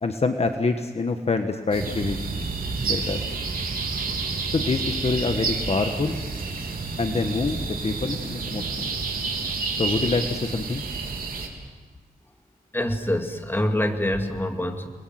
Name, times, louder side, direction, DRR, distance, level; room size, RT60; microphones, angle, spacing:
voice 1, 0.0-2.3 2.8-3.2 4.5-6.2 7.0-8.9 9.8-10.8, left 3 dB, 40° left, 6 dB, 1.4 m, -26 dB
sound 1, 1.7-11.5, right 4 dB, 70° right, 3.9 m, -29 dB
voice 2, 12.7-14.9, left 1 dB, 15° left, 4 dB, 2.4 m, -25 dB
30.0 x 22.0 x 7.8 m, 1.4 s
wide cardioid pair, 105°, 15 cm